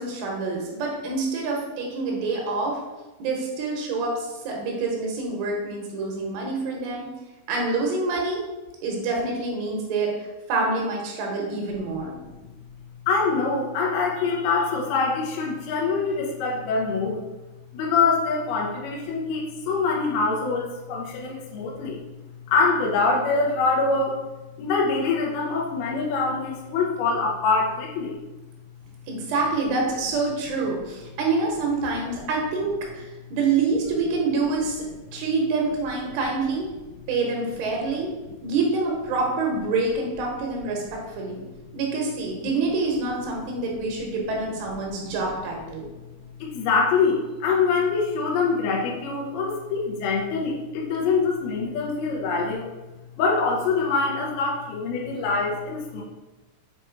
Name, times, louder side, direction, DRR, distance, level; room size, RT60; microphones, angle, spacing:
voice 1, 0.0-2.8 3.2-7.0 7.5-8.4 8.8-10.1 10.5-12.2 29.1-34.8 35.1-36.6 37.1-38.1 38.4-41.4 41.7-45.9, right 3 dB, 75° right, 0 dB, 3.4 m, -26 dB
voice 2, 13.1-17.2 17.7-22.0 22.5-24.2 24.6-28.2 44.8-44.9 46.4-52.7 53.2-56.0, left 4 dB, 85° left, -2 dB, 2.2 m, -24 dB
7.6 x 3.1 x 4.5 m, 1.1 s
omnidirectional pair, 5.8 m